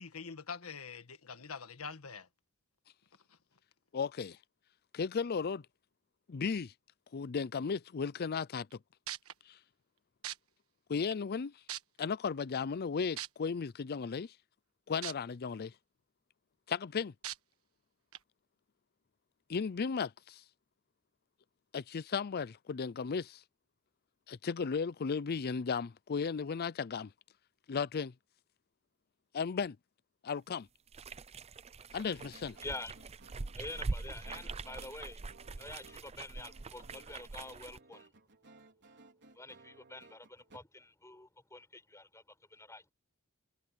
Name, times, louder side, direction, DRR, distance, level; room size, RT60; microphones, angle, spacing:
voice 1, 0.0-2.3 3.3-3.4, left 5 dB, 90° left, 1.6 m, -45 dB
voice 2, 3.9-4.4 4.9-5.6 6.3-6.7 7.1-8.8 9.5-9.6 10.9-11.5 12.0-14.3 14.9-15.7 16.7-17.1 19.5-20.4 21.7-23.4 24.3-27.1 27.7-28.1 29.3-29.8 30.2-30.7 31.9-32.6, left 5 dB, 45° left, 0.5 m, -35 dB
sound 1, 8.7-8.8 9.1-9.3 10.2-10.4 11.1-11.2 11.7-12.1 13.2-13.3 15.0-15.1 15.6-15.7 17.2-17.4 18.1-18.2, right 12 dB, 80° right, 1.4 m, -39 dB
sound 2, 30.9-37.8, right 3 dB, 30° right, 0.5 m, -43 dB
sound 3, 32.2-40.6, right 3 dB, 55° right, 4.4 m, -60 dB
voice 3, 32.6-33.1 33.5-35.2 35.6-38.1 39.3-42.9, left 2 dB, 15° left, 4.9 m, -47 dB
head